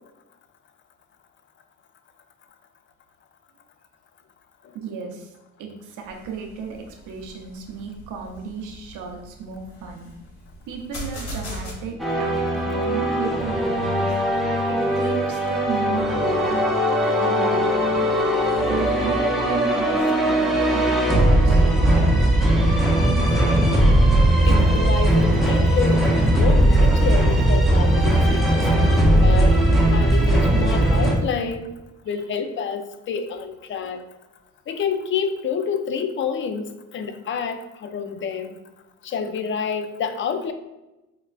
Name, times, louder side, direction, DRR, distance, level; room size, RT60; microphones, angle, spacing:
voice 1, 4.7-5.3 5.6-10.1 10.7-14.1 14.7-16.6 17.0-18.1 18.6-22.1 22.5-23.3, right 5 dB, 80° right, 2 dB, 0.7 m, -34 dB
sound 1, 6.0-11.7, equal, 70° left, 1.0 m, -39 dB
sound 2, 12.0-31.2, right 1 dB, ahead, 0.6 m, -19 dB
voice 2, 24.5-28.7 29.1-29.6 29.9-31.7 32.1-34.0 34.7-38.6 39.0-40.5, left 6 dB, 40° left, 8 dB, 0.4 m, -28 dB
4.7 x 2.3 x 2.3 m, 1.0 s
cardioid pair, 90°, 30 cm